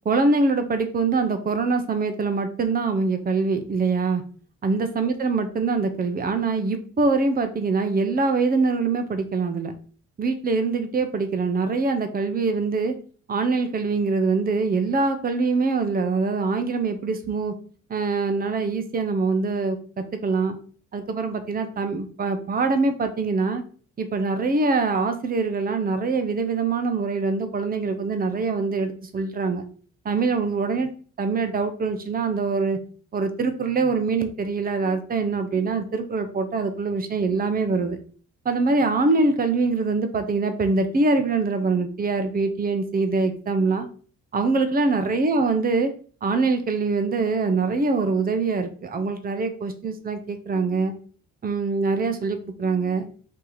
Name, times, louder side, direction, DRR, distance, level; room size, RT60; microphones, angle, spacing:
voice 1, 0.1-4.2 4.6-9.7 10.2-12.9 13.3-17.5 17.9-19.8 20.2-20.6 20.9-23.6 24.0-29.6 30.0-30.9 31.2-32.8 33.1-38.0 38.4-43.9 44.3-45.9 46.2-50.9 51.4-53.1, right 4 dB, 30° right, 8 dB, 0.8 m, -24 dB
4.8 x 2.9 x 3.8 m, 0.41 s
cardioid pair, 90°, 30 cm